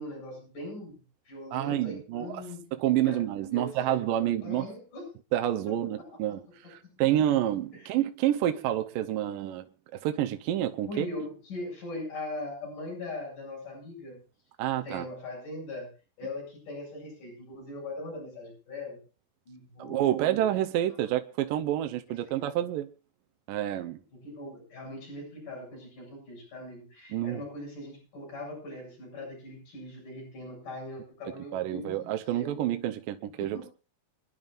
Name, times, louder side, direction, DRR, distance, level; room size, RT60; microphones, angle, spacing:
voice 1, 0.0-4.2 4.4-5.1 6.0-6.1 7.7-7.9 10.9-14.2 14.8-15.9 16.2-19.0 19.5-20.4 22.3-22.5 24.1-32.0 32.3-32.6 33.4-33.7, left 2 dB, 60° left, 9.4 m, -41 dB
voice 2, 1.5-2.4 2.7-4.7 5.3-6.4 6.7-9.7 9.9-11.1 14.6-15.1 19.8-22.9 23.5-24.0 27.1-27.4 31.5-33.7, right 12 dB, 75° right, 2.4 m, -28 dB
28.0 x 10.5 x 2.6 m
omnidirectional pair, 4.2 m